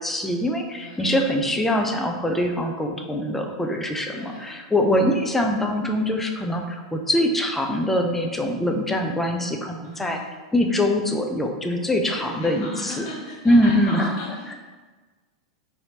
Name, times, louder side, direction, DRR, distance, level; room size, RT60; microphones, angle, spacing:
voice 1, 0.0-10.2 10.5-13.0 13.4-14.1, left 1 dB, 5° left, 3 dB, 0.4 m, -23 dB
voice 2, 0.8-1.1 4.1-4.6 9.8-10.2 12.1-14.5, left 1 dB, 45° left, -5 dB, 1.2 m, -36 dB
4.2 x 2.7 x 2.7 m, 1.3 s
figure-of-eight pair, 95°, 3 cm